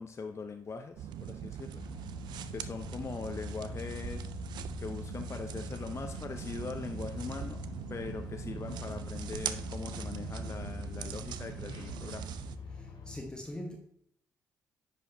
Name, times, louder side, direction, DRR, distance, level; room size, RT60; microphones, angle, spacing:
voice 1, 0.0-1.8 2.5-4.3 4.8-7.6 7.9-12.3, left 4 dB, 35° left, 0.6 m, -41 dB
sound 1, 1.0-12.6, right 10 dB, 65° right, 0.4 m, -41 dB
sound 2, 1.7-13.2, left 4 dB, 65° left, 1.9 m, -44 dB
voice 2, 12.7-13.8, left 1 dB, 10° left, 1.1 m, -42 dB
9.8 x 5.0 x 2.7 m
hypercardioid pair, 45°, 8 cm